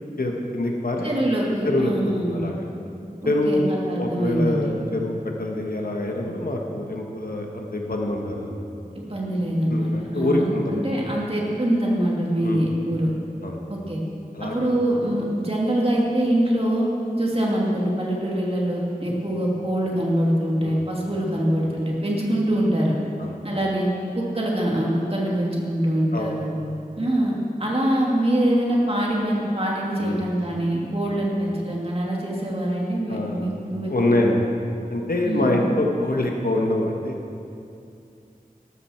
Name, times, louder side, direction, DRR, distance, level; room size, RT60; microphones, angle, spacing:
voice 1, 0.2-1.1 1.6-1.9 2.2-2.6 3.2-8.6 9.7-10.8 12.4-12.6 13.4-13.6 14.3-14.7 19.1-19.2 20.6-20.8 21.3-21.4 23.2-23.4 26.1-26.3 30.0-30.2 31.0-31.2 33.1-33.5 33.9-34.5 34.9-37.1, left 1 dB, 75° left, 1 dB, 1.4 m, -25 dB
voice 2, 1.0-2.4 3.2-4.8 8.9-13.1 13.7-14.0 14.4-16.9 17.2-23.0 23.4-23.9 24.1-26.5 27.0-27.3 27.6-34.2 35.2-35.6, right 1 dB, 40° right, -3 dB, 2.5 m, -24 dB
13.0 x 13.0 x 4.5 m, 2.6 s
wide cardioid pair, 45°, 15 cm